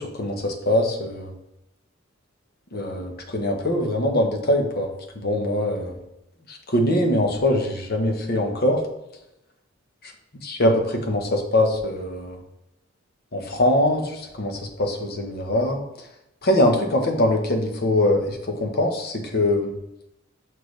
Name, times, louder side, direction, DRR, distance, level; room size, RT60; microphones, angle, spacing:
voice 1, 0.0-1.3 2.7-4.9 5.1-6.0 6.5-8.8 10.4-12.4 13.3-15.8 16.4-19.7, left 1 dB, 50° left, 3 dB, 1.2 m, -22 dB
6.6 x 6.5 x 3.3 m, 0.87 s
head